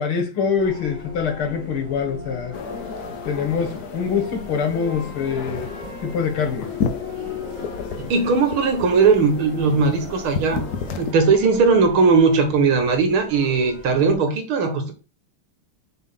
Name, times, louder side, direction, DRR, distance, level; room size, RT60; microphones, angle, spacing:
voice 1, 0.0-2.5 3.3-5.7 6.0-6.7, left 6 dB, 85° left, 2.3 m, -24 dB
sound 1, 0.6-14.2, left 3 dB, 20° right, 3.0 m, -37 dB
sound 2, 2.5-11.1, left 6 dB, 60° left, 1.0 m, -33 dB
voice 2, 7.9-10.6 11.0-14.9, right 4 dB, 80° right, 2.0 m, -18 dB
6.4 x 3.4 x 5.6 m
omnidirectional pair, 2.3 m